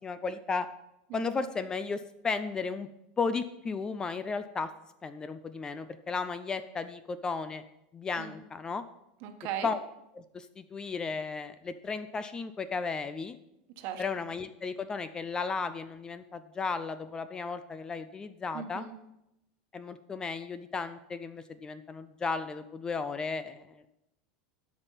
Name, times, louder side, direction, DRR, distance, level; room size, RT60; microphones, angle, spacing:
voice 1, 0.0-0.7 1.1-2.9 3.2-4.7 5.0-7.6 7.9-8.8 9.6-9.8 10.1-13.4 14.0-18.9 19.7-23.8, left 4 dB, 15° left, 12 dB, 0.4 m, -34 dB
voice 2, 1.1-1.4 8.2-8.3 9.2-9.7 13.8-14.0 18.5-19.0, right 10 dB, 50° right, 6 dB, 1.3 m, -38 dB
12.0 x 5.3 x 5.6 m, 0.86 s
supercardioid pair, 145°, 4 cm